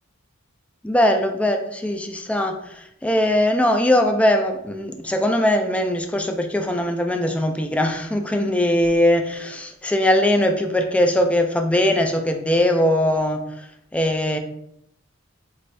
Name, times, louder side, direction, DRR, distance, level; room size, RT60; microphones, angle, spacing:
voice 1, 0.8-13.7 13.9-14.4, left 1 dB, 5° left, 4 dB, 0.3 m, -20 dB
4.6 x 2.5 x 3.2 m, 0.77 s
head